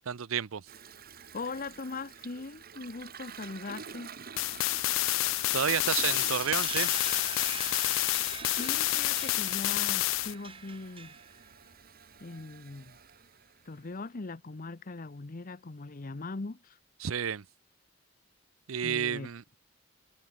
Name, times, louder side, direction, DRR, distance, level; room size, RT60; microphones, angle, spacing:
voice 1, 0.1-0.7 5.5-6.9 17.0-17.4 18.7-19.4, right 8 dB, 90° right, 0.6 m, -31 dB
Toilet flush, 0.7-14.1, right 6 dB, 50° right, 2.1 m, -49 dB
voice 2, 1.3-4.1 8.5-11.1 12.2-13.0 13.7-16.8 18.8-19.3, left 3 dB, 45° left, 0.8 m, -40 dB
sound 1, 4.4-10.4, left 18 dB, 70° left, 0.3 m, -29 dB
sound 2, 5.9-11.4, right 6 dB, 25° right, 2.4 m, -42 dB
head